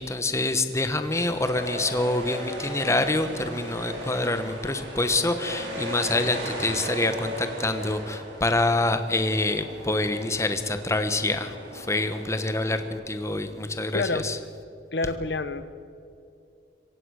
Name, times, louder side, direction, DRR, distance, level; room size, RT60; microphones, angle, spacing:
voice 1, 0.0-14.4, left 2 dB, 15° left, 8 dB, 1.2 m, -26 dB
sound 1, 1.0-12.9, right 1 dB, 75° right, 5.9 m, -37 dB
voice 2, 13.9-14.2 14.9-15.6, left 3 dB, 70° left, 12 dB, 1.0 m, -27 dB
26.5 x 15.5 x 6.5 m, 2.5 s
head